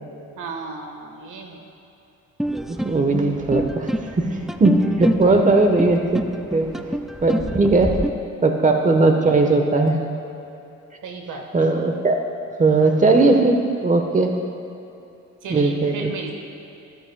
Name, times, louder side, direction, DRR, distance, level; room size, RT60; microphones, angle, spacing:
voice 1, 0.3-1.6 5.3-5.6 11.0-11.5 15.4-16.4, right 4 dB, 80° right, 3 dB, 1.4 m, -34 dB
sound 1, 2.4-8.1, equal, ahead, 0.3 m, -27 dB
voice 2, 2.7-3.9 4.2-6.2 6.5-6.9 7.2-8.0 8.4-10.0 11.5-12.2 12.6-14.3 15.5-16.1, right 3 dB, 25° right, 4 dB, 1.1 m, -18 dB
14.5 x 13.5 x 2.3 m, 2.9 s
cardioid pair, 90°, 30 cm